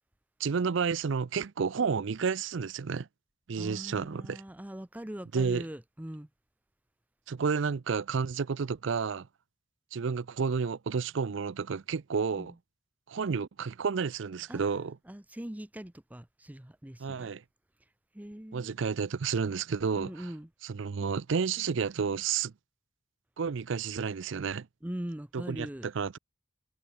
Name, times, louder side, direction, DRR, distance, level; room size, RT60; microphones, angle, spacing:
voice 1, 0.4-3.1 3.5-4.4 5.3-5.7 7.3-9.3 9.9-12.5 13.1-15.0 17.0-17.4 18.5-20.3 20.6-22.5 23.4-24.7 25.3-26.2, right 5 dB, 65° right, 0.5 m, -31 dB
voice 2, 3.6-6.3 12.4-12.5 14.5-14.7 15.1-17.3 18.1-18.8 19.9-20.5 24.8-25.9, equal, 10° right, 0.6 m, -41 dB
head